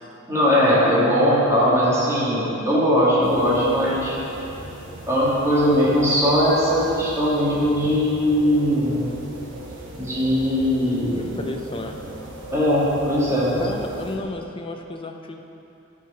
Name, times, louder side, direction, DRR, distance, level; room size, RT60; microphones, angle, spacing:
voice 1, 0.3-4.2 5.1-9.0 10.0-11.3 12.5-13.6, equal, 15° right, -9 dB, 2.4 m, -20 dB
sound 1, 3.2-14.2, right 1 dB, 65° right, 1.3 m, -38 dB
voice 2, 11.1-12.0 13.6-15.4, left 2 dB, 25° left, 3 dB, 0.7 m, -32 dB
11.0 x 5.2 x 5.7 m, 2.9 s
head